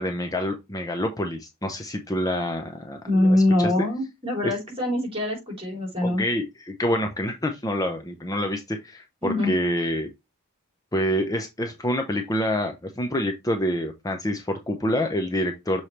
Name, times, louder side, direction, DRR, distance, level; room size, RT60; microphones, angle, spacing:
voice 1, 0.0-3.9 4.4-4.5 6.0-10.1 10.9-15.8, equal, 15° left, 5 dB, 0.7 m, -27 dB
voice 2, 3.1-6.2 9.2-9.5, left 1 dB, 25° right, 0 dB, 3.7 m, -23 dB
6.8 x 4.3 x 3.2 m, 0.22 s
head